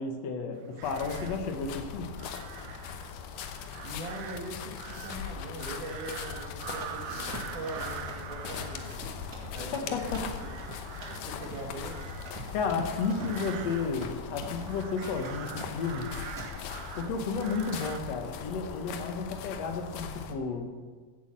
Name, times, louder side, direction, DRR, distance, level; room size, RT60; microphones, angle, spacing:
voice 1, 0.0-2.1 9.7-10.2 12.5-16.1 17.0-20.7, left 4 dB, 60° left, 5 dB, 2.2 m, -32 dB
sound 1, 0.5-18.0, right 10 dB, 85° right, 1.5 m, -45 dB
sound 2, 0.8-20.3, left 7 dB, 75° left, 2.5 m, -40 dB
voice 2, 3.8-9.0 9.5-10.1 10.4-10.5 11.2-12.0, right 1 dB, 65° right, 1 dB, 3.2 m, -41 dB
Run, 6.7-14.8 15.0-15.4 15.6-16.0 16.4-16.5, right 2 dB, 30° right, 2.0 m, -46 dB
14.0 x 8.3 x 7.5 m, 1.5 s
omnidirectional pair, 3.9 m